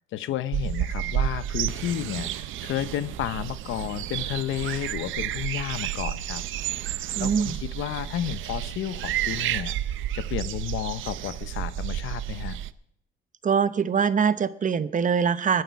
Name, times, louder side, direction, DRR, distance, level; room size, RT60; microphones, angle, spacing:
voice 1, 0.1-6.4 7.2-9.8 10.1-12.6, left 12 dB, 85° left, 14 dB, 0.8 m, -32 dB
sound 1, 0.5-12.7, right 12 dB, 80° right, 0.6 m, -31 dB
voice 2, 7.2-7.6 13.4-15.6, right 6 dB, 40° right, 14 dB, 0.8 m, -23 dB
21.5 x 8.0 x 4.7 m, 0.70 s
cardioid pair, 90°, 20 cm